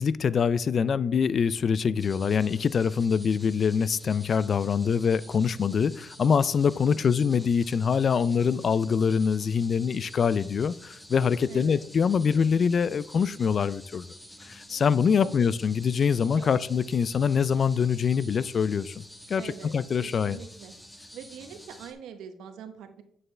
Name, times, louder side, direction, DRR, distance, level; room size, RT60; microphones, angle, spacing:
voice 1, 0.0-14.1 14.4-19.0 19.3-20.4, left 6 dB, 50° left, 0.3 m, -24 dB
sound 1, 2.0-21.9, equal, 10° left, 1.2 m, -49 dB
voice 2, 6.9-7.2 11.5-11.8 14.7-14.9 15.2-15.5 16.3-16.6 19.4-19.7 20.0-20.7 21.1-23.0, right 7 dB, 85° right, 0.9 m, -44 dB
8.8 x 6.7 x 3.3 m
cardioid pair, 90°, 0 cm